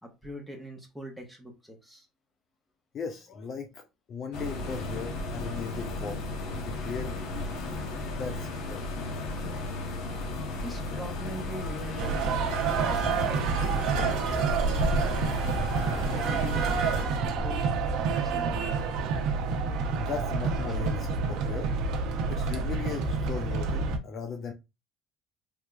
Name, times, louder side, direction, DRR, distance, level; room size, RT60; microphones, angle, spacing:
voice 1, 0.0-2.1 10.6-12.3 12.5-14.3 14.6-15.6 15.9-19.1 20.7-20.8, equal, 5° left, 1.0 m, -43 dB
voice 2, 2.9-3.8 4.1-6.3 6.7-8.9 20.0-21.7 22.3-24.5, left 6 dB, 40° left, 0.4 m, -38 dB
sound 1, 4.3-17.0, left 2 dB, 70° left, 1.0 m, -35 dB
sound 2, 12.0-24.0, right 4 dB, 65° right, 0.7 m, -28 dB
3.4 x 3.0 x 2.4 m
cardioid pair, 135°, 0 cm